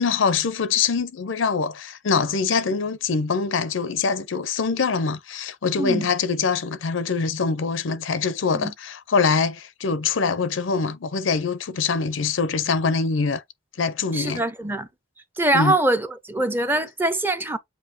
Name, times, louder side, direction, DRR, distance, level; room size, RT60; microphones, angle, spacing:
voice 1, 0.0-13.4 13.8-14.4 15.5-15.7, left 5 dB, 90° left, 0.6 m, -24 dB
voice 2, 14.1-14.9 15.4-17.6, right 2 dB, 10° right, 0.5 m, -23 dB
7.3 x 2.7 x 2.7 m
head